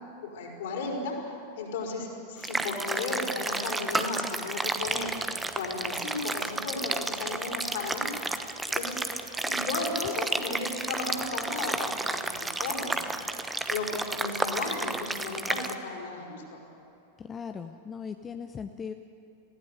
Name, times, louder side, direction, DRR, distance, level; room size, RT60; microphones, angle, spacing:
voice 1, 0.2-8.1 8.7-9.0 9.4-16.6, left 3 dB, 55° left, 0 dB, 4.8 m, -35 dB
sound 1, 2.4-15.7, right 2 dB, 10° right, 1.0 m, -32 dB
voice 2, 17.2-18.9, left 6 dB, 20° left, 7 dB, 0.7 m, -38 dB
19.5 x 16.0 x 9.4 m, 2.8 s
figure-of-eight pair, 90°, 0 cm